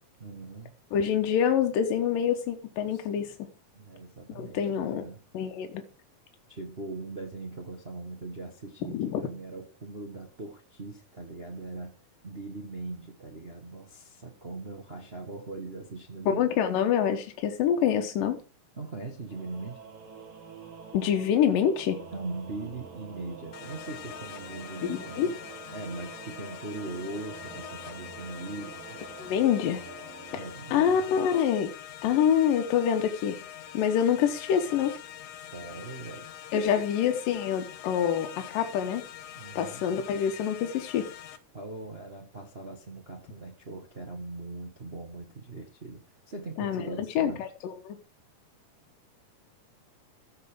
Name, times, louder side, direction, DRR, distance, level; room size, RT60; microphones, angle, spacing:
voice 1, 0.2-0.7 2.9-3.1 3.7-5.2 6.5-11.9 12.2-16.5 18.7-19.8 22.1-25.4 25.7-29.0 30.3-31.3 35.3-36.8 39.4-39.8 41.5-46.0 46.3-47.4, right 3 dB, 60° right, 0.6 m, -40 dB
voice 2, 0.9-3.3 4.3-5.0 5.3-5.8 8.9-9.2 16.3-18.4 20.9-22.0 24.8-25.3 29.2-29.8 30.3-30.4 30.7-31.7 32.0-33.4 33.7-34.9 36.5-39.0 39.6-41.1 46.6-46.9 47.2-48.0, left 8 dB, 85° left, 2.8 m, -26 dB
Singing / Musical instrument, 19.3-31.7, right 5 dB, 85° right, 4.7 m, -47 dB
sound 1, 23.5-41.4, left 11 dB, 65° left, 1.9 m, -44 dB
14.5 x 6.8 x 5.0 m
omnidirectional pair, 3.8 m